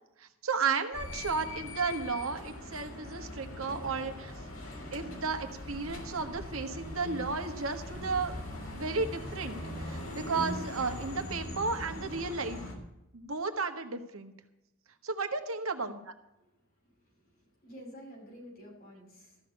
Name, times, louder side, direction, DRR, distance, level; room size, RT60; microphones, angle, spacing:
voice 1, 0.2-4.3 4.9-12.6 13.1-14.3 15.0-16.1, right 4 dB, 80° right, 6 dB, 1.5 m, -34 dB
sound 1, 0.9-12.7, left 1 dB, 75° left, 3.3 m, -41 dB
voice 2, 17.0-19.4, equal, 45° left, -1 dB, 6.5 m, -50 dB
14.0 x 6.5 x 8.3 m, 0.90 s
head